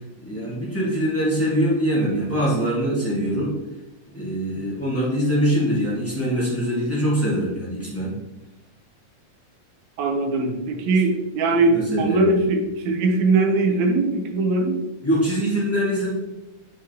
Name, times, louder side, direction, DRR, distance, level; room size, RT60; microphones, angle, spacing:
voice 1, 0.2-3.5 4.1-8.1 11.7-12.3 15.0-16.1, equal, 10° left, -8 dB, 0.6 m, -23 dB
voice 2, 10.0-14.8, right 3 dB, 70° right, 3 dB, 1.8 m, -21 dB
6.9 x 5.0 x 2.9 m, 0.97 s
omnidirectional pair, 3.8 m